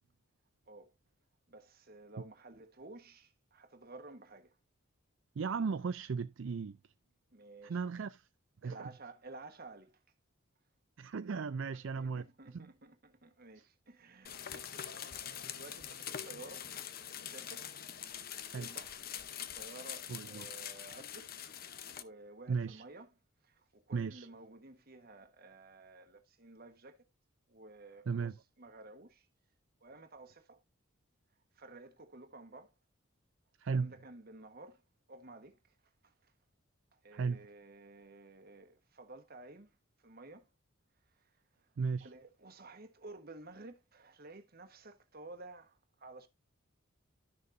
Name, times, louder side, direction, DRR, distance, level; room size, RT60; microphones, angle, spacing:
voice 1, 1.5-4.6 7.3-7.8 8.6-10.0 12.0-16.7 17.2-17.7 18.4-19.0 19.4-21.3 21.9-23.1 23.4-27.1 27.5-29.3 29.8-30.6 31.5-32.7 33.7-34.8 35.1-35.8 36.0-36.3 36.9-39.7 40.0-40.5 41.2-41.3 42.0-46.3, right 2 dB, 45° right, 1.3 m, -53 dB
voice 2, 5.4-6.9 7.6-8.3 8.6-8.9 11.0-12.7 13.6-13.7 18.5-18.7 20.1-20.5 22.5-22.8 23.9-24.3 28.1-28.4 33.6-33.9 37.1-37.5 41.8-42.1, right 5 dB, 65° right, 0.4 m, -36 dB
sound 1, 14.2-22.0, left 9 dB, 45° left, 0.8 m, -44 dB
12.5 x 6.6 x 2.6 m
head